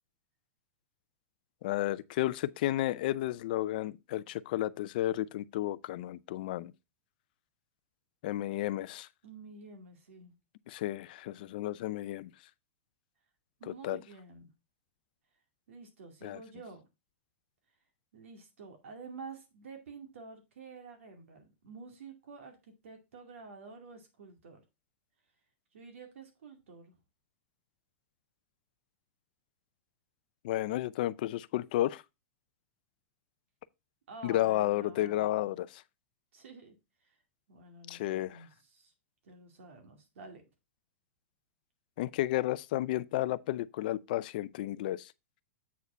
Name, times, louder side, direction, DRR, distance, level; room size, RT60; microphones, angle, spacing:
voice 1, 1.6-6.7 8.2-9.1 10.7-12.3 13.8-14.0 16.2-16.4 30.4-32.0 34.2-35.8 37.9-38.4 42.0-45.1, left 15 dB, 45° left, 0.4 m, -32 dB
voice 2, 9.2-10.3 13.6-14.5 15.7-16.8 18.1-22.6 22.8-24.6 25.7-26.9 34.1-35.6 36.3-36.8 37.5-38.9 39.2-40.4, right 4 dB, 80° right, 2.3 m, -49 dB
8.2 x 4.8 x 4.4 m
supercardioid pair, 175°, 7 cm